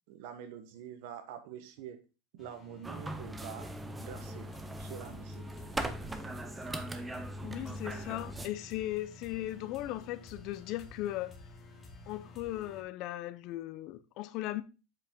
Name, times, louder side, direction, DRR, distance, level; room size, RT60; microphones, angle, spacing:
voice 1, 0.1-2.0 2.3-4.5 4.8-5.4, right 9 dB, 60° right, 1.1 m, -46 dB
sound 1, 2.4-12.8, left 2 dB, 20° left, 1.5 m, -52 dB
sound 2, 2.8-8.5, right 1 dB, 10° right, 0.5 m, -40 dB
voice 2, 7.4-11.4 12.1-14.6, left 15 dB, 45° left, 0.5 m, -37 dB
7.5 x 5.0 x 3.7 m
supercardioid pair, 165°, 0 cm